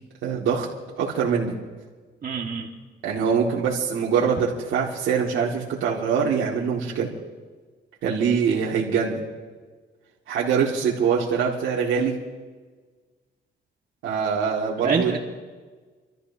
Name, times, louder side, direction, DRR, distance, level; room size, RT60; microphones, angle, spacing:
voice 1, 0.2-0.7 1.0-1.6 3.0-7.1 8.0-9.2 10.3-12.2 14.0-15.2, right 6 dB, 85° right, -5 dB, 2.1 m, -23 dB
voice 2, 2.2-2.7 14.8-15.2, right 5 dB, 45° right, -1 dB, 1.8 m, -25 dB
30.0 x 13.0 x 2.8 m, 1.4 s
cardioid pair, 90°, 20 cm